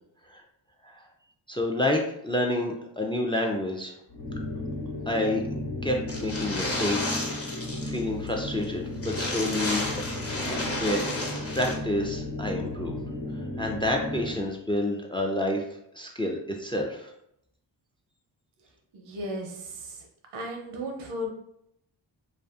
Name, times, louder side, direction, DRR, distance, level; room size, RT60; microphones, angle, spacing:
voice 1, 1.5-3.9 5.1-5.4 5.8-7.2 7.5-9.8 10.5-11.0 11.5-12.9 13.6-15.6 15.9-17.1, left 1 dB, 10° left, 2 dB, 0.3 m, -29 dB
sound 1, 4.1-14.5, left 2 dB, 70° left, 1.1 m, -34 dB
sound 2, 6.1-8.0 8.3-8.4 8.6-8.7 9.0-11.7, left 2 dB, 30° left, 0.8 m, -32 dB
voice 2, 18.9-20.0 20.3-21.3, equal, 85° right, 2 dB, 0.7 m, -35 dB
2.5 x 2.4 x 2.3 m, 0.77 s
supercardioid pair, 45°, 48 cm